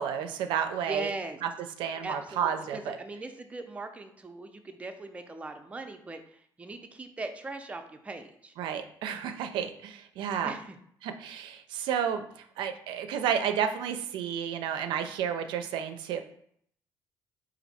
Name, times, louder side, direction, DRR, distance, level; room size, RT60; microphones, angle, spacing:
voice 1, 0.0-1.1 1.4-1.5 1.8-3.0 8.6-10.6 11.0-16.2, right 8 dB, 85° right, 7 dB, 0.4 m, -31 dB
voice 2, 0.8-1.4 2.0-8.5 10.4-10.8, right 2 dB, 15° right, 6 dB, 0.5 m, -39 dB
4.2 x 2.6 x 4.1 m, 0.66 s
cardioid pair, 115°, 8 cm